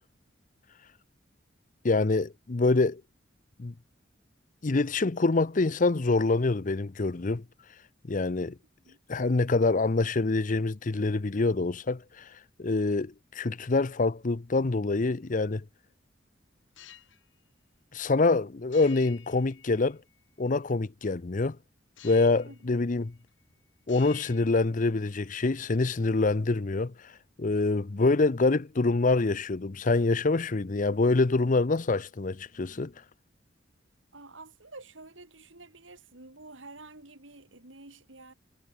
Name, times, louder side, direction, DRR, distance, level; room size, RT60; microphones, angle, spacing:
voice 1, 1.8-3.0 3.6-3.7 4.6-7.4 8.1-8.6 9.1-12.2 12.6-15.6 17.9-20.0 20.4-21.6 22.0-23.1 23.9-26.9 27.4-32.9, left 3 dB, 45° left, 0.7 m, -26 dB
sound 1, 16.6-17.2 18.7-20.2 22.0-22.7 23.0-23.5 23.8-25.2, left 10 dB, 80° left, 3.6 m, -51 dB
voice 2, 34.1-38.3, right 2 dB, 85° right, 5.0 m, -49 dB
head